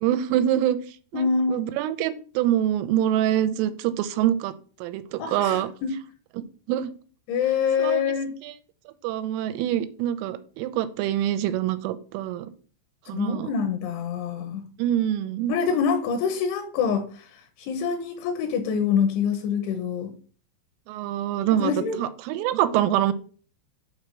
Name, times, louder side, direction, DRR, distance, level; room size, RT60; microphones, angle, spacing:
voice 1, 0.0-4.5 4.8-5.7 6.7-6.9 7.8-8.0 8.4-8.5 9.0-12.5 13.1-13.5 14.8-15.6 20.9-21.7 22.0-23.1, right 11 dB, 85° right, 12 dB, 3.3 m, -25 dB
voice 2, 1.1-1.7 5.2-5.9 7.3-8.3 13.1-14.6 15.5-17.3 17.6-20.1 21.6-22.0, left 6 dB, 75° left, 7 dB, 3.2 m, -25 dB
8.1 x 4.4 x 6.1 m, 0.41 s
omnidirectional pair, 5.6 m